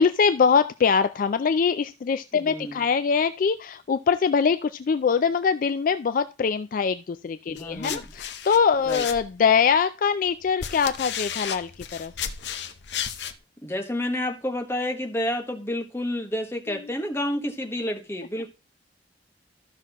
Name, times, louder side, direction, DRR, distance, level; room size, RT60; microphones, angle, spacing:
voice 1, 0.0-12.1, left 6 dB, 50° left, 0.3 m, -23 dB
voice 2, 2.3-2.8 7.5-8.0 8.9-9.0 13.6-18.5, left 1 dB, 15° left, 1.3 m, -29 dB
sound 1, 7.6-9.6 10.3-13.4, left 8 dB, 70° left, 0.7 m, -33 dB
14.0 x 6.0 x 2.9 m
head